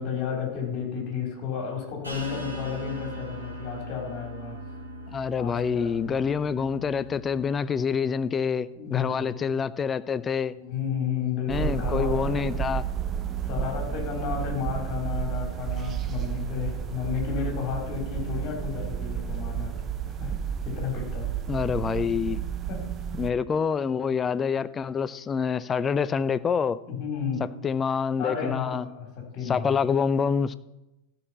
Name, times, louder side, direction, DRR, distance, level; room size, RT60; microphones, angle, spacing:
voice 1, 0.0-4.6 5.4-6.2 8.7-9.4 10.6-12.5 13.4-19.7 20.2-21.3 22.7-22.8 26.9-27.5 28.2-29.8, left 7 dB, 40° left, 4.0 m, -32 dB
sound 1, 2.0-7.4, equal, 80° right, 3.3 m, -39 dB
voice 2, 5.1-10.6 11.5-12.8 21.5-22.4 23.2-26.8 27.6-28.8 29.5-30.5, left 6 dB, 20° left, 0.4 m, -26 dB
sound 2, 11.5-23.3, right 9 dB, 25° right, 0.8 m, -31 dB
14.5 x 6.4 x 5.8 m
figure-of-eight pair, 90°, 0 cm